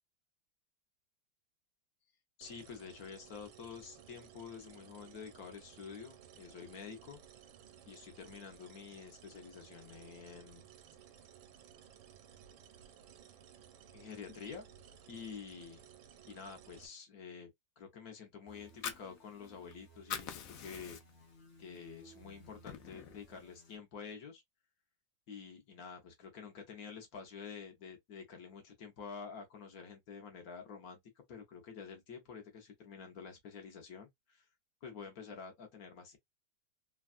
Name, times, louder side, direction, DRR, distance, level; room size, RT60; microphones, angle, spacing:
voice 1, 2.4-7.2 7.8-10.7 13.9-14.6 15.1-15.8 16.3-17.5 17.8-21.0 21.6-24.4 25.3-31.0 31.3-34.4 34.8-36.2, left 6 dB, 60° left, 1.1 m, -49 dB
sound 1, 2.4-16.9, right 9 dB, 85° right, 1.4 m, -58 dB
sound 2, 18.5-23.8, right 2 dB, 30° left, 0.8 m, -60 dB
Fire, 18.6-19.7 20.0-21.3 21.7-21.9 22.3-23.3, left 9 dB, 90° left, 0.7 m, -43 dB
3.4 x 2.3 x 2.4 m
omnidirectional pair, 2.1 m